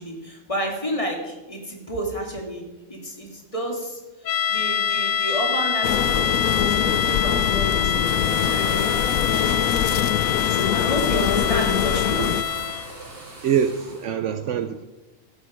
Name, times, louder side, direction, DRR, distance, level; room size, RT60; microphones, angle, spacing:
voice 1, 0.0-4.0 4.5-10.0 10.5-12.3, equal, 25° left, 1 dB, 2.3 m, -31 dB
sound 1, 4.3-13.0, left 8 dB, 65° left, 0.4 m, -25 dB
sound 2, 5.8-12.4, left 10 dB, 85° left, 1.0 m, -24 dB
sound 3, 7.2-14.0, right 2 dB, 40° right, 2.9 m, -38 dB
voice 2, 13.4-14.8, right 8 dB, 70° right, 11 dB, 0.8 m, -24 dB
15.5 x 8.2 x 5.0 m, 1.1 s
omnidirectional pair, 1.4 m